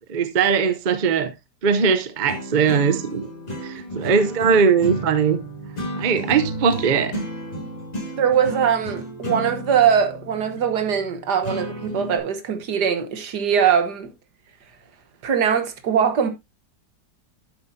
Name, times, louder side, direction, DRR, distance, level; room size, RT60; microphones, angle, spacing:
voice 1, 0.1-1.3 1.6-3.3 3.6-5.4 6.0-7.3, right 6 dB, 40° right, 0.7 m, -20 dB
sound 1, 2.2-12.2, equal, 25° left, 2.4 m, -33 dB
voice 2, 8.2-14.1 15.2-16.3, right 8 dB, 75° right, 1.8 m, -21 dB
10.5 x 7.6 x 2.7 m
omnidirectional pair, 1.8 m